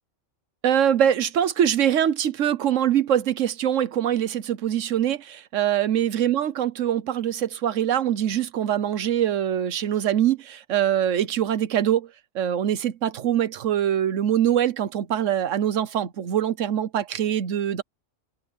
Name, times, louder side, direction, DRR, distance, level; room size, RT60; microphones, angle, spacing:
voice 1, 0.6-12.1 12.3-17.8, right 10 dB, 70° right, 1.3 m, -23 dB
omnidirectional pair, 1.3 m